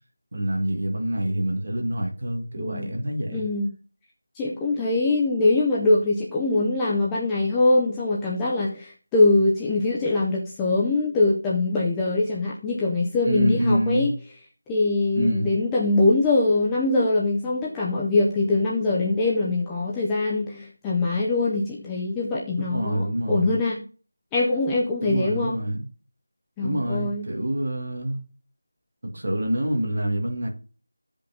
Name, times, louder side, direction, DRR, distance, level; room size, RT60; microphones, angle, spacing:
voice 1, 0.3-3.4 13.2-14.1 15.1-15.5 22.6-23.5 25.0-25.9 26.6-28.2 29.0-30.5, right 1 dB, 35° right, 1.8 m, -26 dB
voice 2, 2.6-2.9 3.3-3.7 4.4-14.1 14.7-23.8 24.3-25.6 26.6-27.3, left 2 dB, 5° left, 0.5 m, -23 dB
15.0 x 5.2 x 2.7 m
figure-of-eight pair, 180°, 0 cm